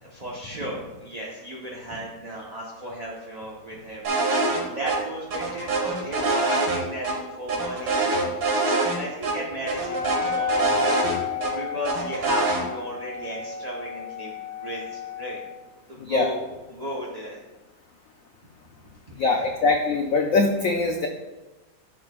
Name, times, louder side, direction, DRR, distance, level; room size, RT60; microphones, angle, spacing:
voice 1, 0.0-4.1 4.5-15.4 15.9-17.4 19.1-19.5, equal, 30° right, -4 dB, 0.7 m, -35 dB
sound 1, 4.0-4.6 4.9-5.0 5.3-7.1 7.5-9.0 9.2-9.3 9.7-11.5 11.8-12.6, right 3 dB, 70° right, 2.1 m, -24 dB
Wind instrument woodwind instrument, 9.8-15.6, left 6 dB, 55° left, 1.2 m, -32 dB
voice 2, 16.0-16.3 19.2-21.1, left 3 dB, 90° left, 3 dB, 0.7 m, -22 dB
11.0 x 6.8 x 2.3 m, 1.1 s
omnidirectional pair, 2.2 m